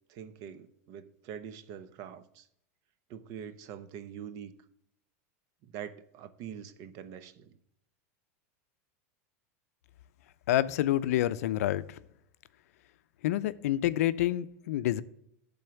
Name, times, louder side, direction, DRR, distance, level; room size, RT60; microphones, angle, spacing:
voice 1, 0.1-2.5 3.1-4.5 5.6-7.6, right 8 dB, 50° right, 0.7 m, -44 dB
voice 2, 10.5-12.0 13.2-15.0, left 13 dB, 80° left, 0.4 m, -28 dB
10.5 x 3.9 x 6.9 m
supercardioid pair, 135°, 8 cm